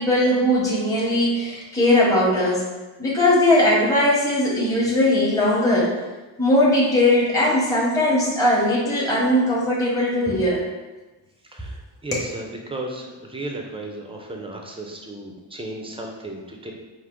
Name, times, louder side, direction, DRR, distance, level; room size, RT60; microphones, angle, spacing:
voice 1, 0.0-2.6 3.0-5.9 6.4-10.6 12.1-12.2, left 1 dB, 5° left, -6 dB, 0.9 m, -19 dB
voice 2, 11.4-16.7, right 2 dB, 10° right, 1 dB, 0.5 m, -35 dB
4.9 x 2.5 x 3.7 m, 1.2 s
wide cardioid pair, 145°, 46 cm